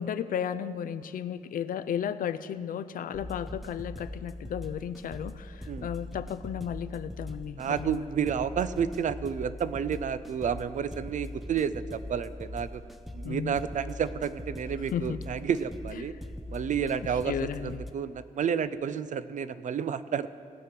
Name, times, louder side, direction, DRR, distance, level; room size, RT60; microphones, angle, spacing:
voice 1, 0.0-8.1 13.2-13.6 14.9-15.2 17.3-17.8, left 8 dB, 75° left, 13 dB, 0.5 m, -34 dB
sound 1, 3.1-17.9, left 1 dB, ahead, 0.6 m, -42 dB
voice 2, 7.6-12.8 13.1-16.1 16.5-20.3, right 7 dB, 60° right, 14 dB, 0.5 m, -30 dB
19.0 x 6.6 x 6.0 m, 2.3 s
cardioid pair, 110°, 14 cm